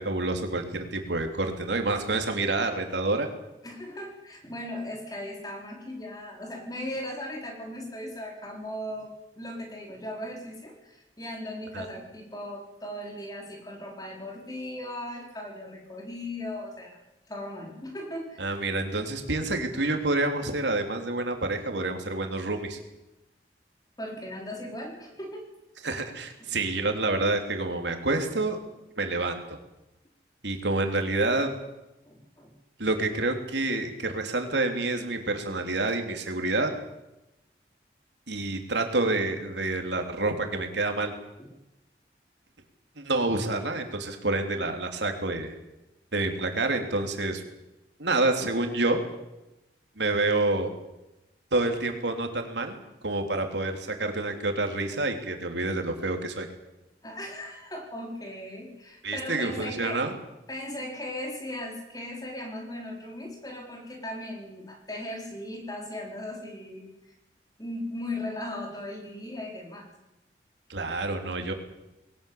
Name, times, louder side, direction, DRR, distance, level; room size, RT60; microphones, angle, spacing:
voice 1, 0.0-3.3 11.7-11.9 18.4-22.8 25.8-28.6 29.0-29.6 30.4-31.5 32.8-36.7 38.3-41.1 43.0-45.5 46.1-47.4 48.0-49.0 50.0-50.7 51.5-56.5 59.0-60.1 70.7-71.5, right 2 dB, 85° right, 5 dB, 3.5 m, -28 dB
voice 2, 3.6-17.0 17.3-18.6 24.0-25.5 26.4-26.5 32.0-32.5 41.4-41.5 57.0-60.0 60.5-67.1 67.6-69.9, left 1 dB, 20° left, 2 dB, 4.4 m, -38 dB
21.5 x 18.5 x 8.7 m, 0.96 s
head